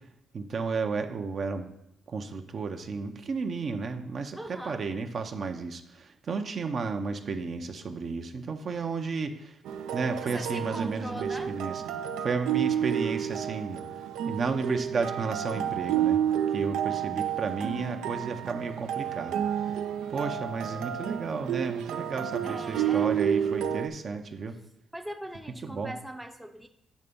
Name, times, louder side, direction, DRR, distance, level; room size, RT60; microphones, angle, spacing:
voice 1, 0.3-1.7 2.1-9.6 9.9-11.8 12.2-13.8 14.3-16.2 16.5-19.8 20.1-24.5 25.6-25.9, right 4 dB, 50° right, 6 dB, 0.6 m, -33 dB
voice 2, 4.3-4.9 10.2-11.6 22.4-23.1 24.9-26.7, right 1 dB, 5° right, 5 dB, 0.6 m, -40 dB
sound 1, 9.7-23.9, right 9 dB, 90° right, 0.5 m, -30 dB
8.2 x 3.3 x 5.3 m, 0.78 s
cardioid pair, 90°, 0 cm